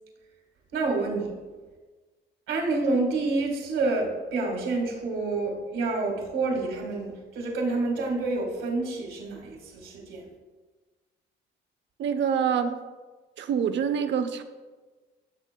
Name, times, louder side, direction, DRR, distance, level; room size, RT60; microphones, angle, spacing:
voice 1, 0.7-1.3 2.5-10.2, right 3 dB, 85° right, 1 dB, 1.8 m, -28 dB
voice 2, 12.0-12.8 13.4-14.4, right 7 dB, 65° right, 8 dB, 0.7 m, -26 dB
13.5 x 6.4 x 2.2 m, 1.3 s
cardioid pair, 90°, 20 cm